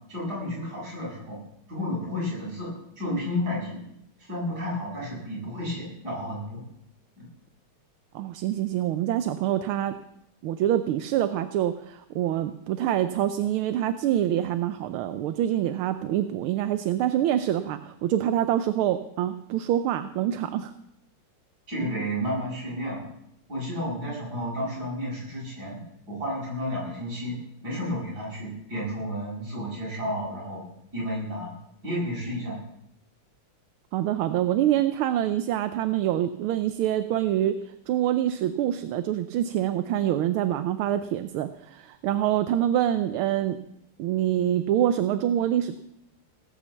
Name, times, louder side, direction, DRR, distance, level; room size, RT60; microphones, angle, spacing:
voice 1, 0.1-1.4 1.7-3.8 4.2-6.6 7.2-7.3 21.7-23.1 23.5-25.8 26.1-27.4 27.6-30.6 30.9-31.5 31.8-32.6, equal, 45° right, -4 dB, 8.5 m, -31 dB
voice 2, 8.1-9.9 10.4-20.7 33.9-43.6 44.0-45.8, right 11 dB, 75° right, 10 dB, 1.5 m, -26 dB
18.5 x 8.6 x 7.2 m, 0.79 s
omnidirectional pair, 2.4 m